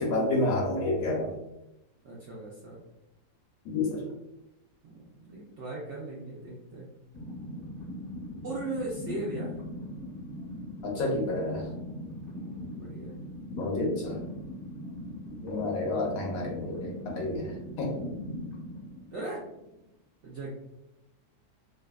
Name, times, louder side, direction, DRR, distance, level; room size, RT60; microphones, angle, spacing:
voice 1, 0.0-1.3 3.7-4.0 10.8-11.6 13.5-14.2 15.4-18.0, left 2 dB, 70° left, -1 dB, 0.9 m, -29 dB
voice 2, 2.0-2.8 4.8-6.9 8.4-9.6 12.3-13.2 19.1-19.4 20.2-20.5, right 2 dB, 75° right, -5 dB, 0.6 m, -38 dB
sound 1, 7.1-19.8, left 1 dB, 25° left, 0.6 m, -40 dB
2.6 x 2.3 x 2.2 m, 0.90 s
omnidirectional pair, 1.7 m